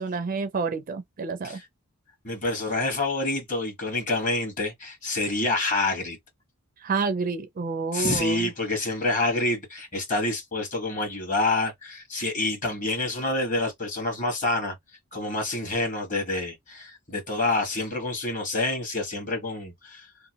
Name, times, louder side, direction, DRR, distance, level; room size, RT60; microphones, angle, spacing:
voice 1, 0.0-1.6 6.8-8.5, right 4 dB, 40° right, 0.4 m, -29 dB
voice 2, 2.2-6.2 7.9-14.7 15.1-20.1, left 2 dB, 35° left, 1.3 m, -27 dB
2.9 x 2.2 x 2.9 m
head